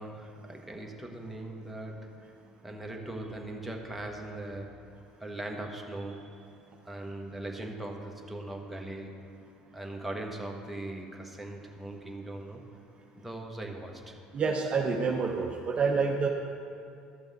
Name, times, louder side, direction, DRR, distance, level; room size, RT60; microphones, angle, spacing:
voice 1, 0.0-2.3 2.6-4.9 5.2-6.5 6.8-9.3 9.7-12.6 13.1-14.2, right 1 dB, 5° right, 0 dB, 1.3 m, -40 dB
voice 2, 14.3-16.3, right 5 dB, 40° right, 1 dB, 0.8 m, -28 dB
13.0 x 6.9 x 4.0 m, 2.4 s
hypercardioid pair, 70°, 3 cm